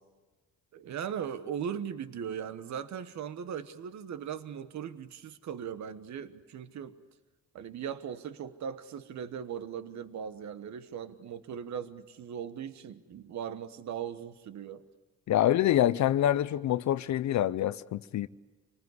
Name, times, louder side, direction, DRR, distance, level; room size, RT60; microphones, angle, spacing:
voice 1, 0.7-7.0 7.5-14.8, right 8 dB, 65° right, 1.3 m, -39 dB
voice 2, 15.3-18.3, left 12 dB, 70° left, 0.7 m, -26 dB
27.5 x 19.5 x 9.7 m
cardioid pair, 90°, 30 cm